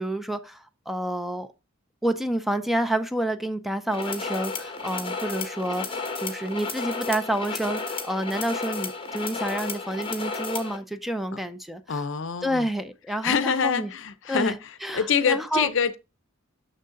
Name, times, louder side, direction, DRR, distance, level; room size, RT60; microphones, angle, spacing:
voice 1, 0.0-1.5 2.0-12.0 12.4-13.9 14.3-15.7, right 1 dB, ahead, 0.5 m, -29 dB
sound 1, 3.9-10.8, left 4 dB, 25° left, 1.2 m, -33 dB
voice 2, 11.9-12.7 13.2-16.0, left 6 dB, 60° left, 0.6 m, -26 dB
6.6 x 6.4 x 3.7 m
head